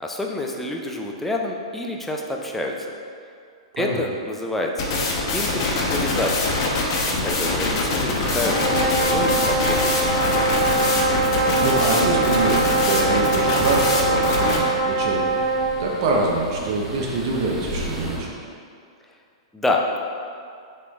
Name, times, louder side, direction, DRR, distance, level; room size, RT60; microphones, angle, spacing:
voice 1, 0.0-2.7 3.8-4.9 5.3-6.6 7.2-9.9 19.5-20.0, left 2 dB, 5° left, 0 dB, 0.4 m, -27 dB
sound 1, 4.8-14.6, left 3 dB, 50° left, 0.8 m, -23 dB
sound 2, 8.1-18.2, equal, 10° right, 1.2 m, -36 dB
sound 3, 8.3-15.7, right 3 dB, 70° left, 1.1 m, -23 dB
voice 2, 10.9-15.3 15.8-18.3, right 3 dB, 50° right, -2 dB, 0.6 m, -25 dB
4.0 x 3.2 x 3.4 m, 2.3 s
hypercardioid pair, 120°, 3 cm